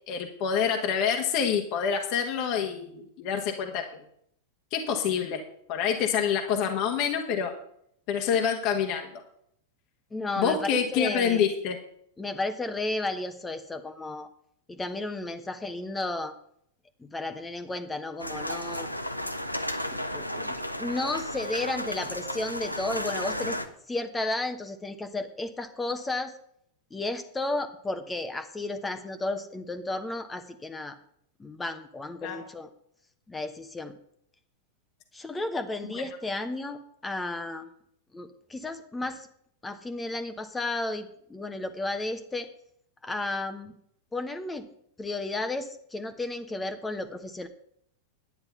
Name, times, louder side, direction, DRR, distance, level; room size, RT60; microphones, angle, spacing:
voice 1, 0.1-4.0 4.7-5.4 5.7-7.5 8.1-9.1 10.4-11.8 32.2-32.4, left 7 dB, 45° left, 3 dB, 1.3 m, -27 dB
voice 2, 10.1-11.4 12.2-14.3 14.7-16.3 17.0-18.9 19.9-23.6 23.9-26.3 26.9-31.0 31.4-32.7 33.3-33.9 35.1-37.7 38.1-39.3 39.6-42.5 43.0-43.8 44.1-44.7 45.0-47.5, left 2 dB, 10° left, 9 dB, 1.0 m, -33 dB
sound 1, 18.2-23.7, left 1 dB, 90° left, 0.9 m, -33 dB
11.0 x 9.5 x 5.7 m, 0.69 s
figure-of-eight pair, 90°, 0 cm